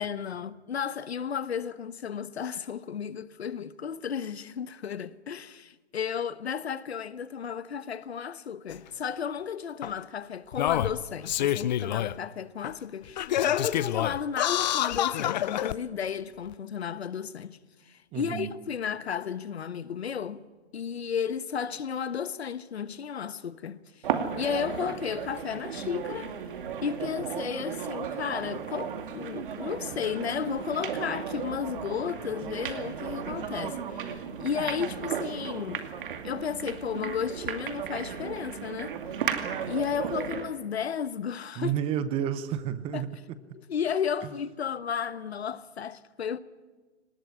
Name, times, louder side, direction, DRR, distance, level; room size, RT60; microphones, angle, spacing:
voice 1, 0.0-17.6 17.9-20.4 20.7-23.8 24.4-26.3 26.8-35.8 36.2-38.9 39.7-41.7 42.9-43.0 43.7-46.4, left 7 dB, 70° left, 1.3 m, -33 dB
Singing, 8.7-8.8 9.8-9.9 10.5-12.2 12.6-12.7 13.2-15.7 16.5-16.6, left 12 dB, 40° left, 0.7 m, -27 dB
voice 2, 18.1-18.5 41.6-43.4 44.2-44.3, right 9 dB, 15° right, 0.8 m, -31 dB
sound 1, 24.0-40.5, right 7 dB, 50° right, 2.5 m, -35 dB
23.0 x 19.5 x 9.8 m
hypercardioid pair, 135°, 34 cm